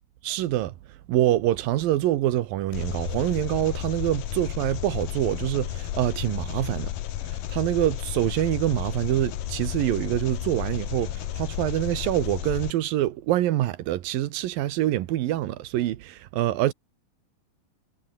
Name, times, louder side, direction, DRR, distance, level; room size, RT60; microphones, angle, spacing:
voice 1, 0.2-6.9 7.2-16.7, right 14 dB, 80° right, 2.9 m, -25 dB
Engine, 2.7-12.7, left 12 dB, 70° left, 3.0 m, -32 dB
omnidirectional pair, 4.1 m